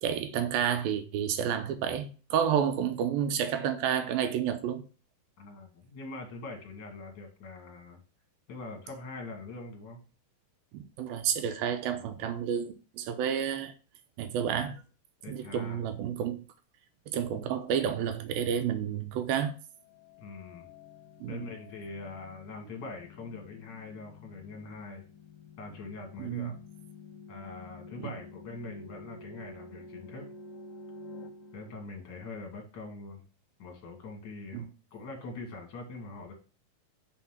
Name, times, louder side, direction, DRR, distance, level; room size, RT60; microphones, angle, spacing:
voice 1, 0.0-4.9 10.7-13.7 14.2-14.8 15.3-16.4 17.1-19.5 21.2-21.5 26.2-26.5 28.0-28.1 34.5-34.7, right 8 dB, 85° right, 2.5 m, -30 dB
voice 2, 5.4-8.0 8.5-10.0 11.9-12.1 15.2-15.8 20.2-20.7 21.3-25.0 25.6-26.5 27.3-30.3 31.5-33.2 33.6-34.7 34.9-36.3, left 3 dB, 35° left, 2.0 m, -43 dB
sound 1, 19.8-32.5, left 3 dB, 80° left, 2.2 m, -50 dB
5.7 x 4.5 x 5.9 m
omnidirectional pair, 4.2 m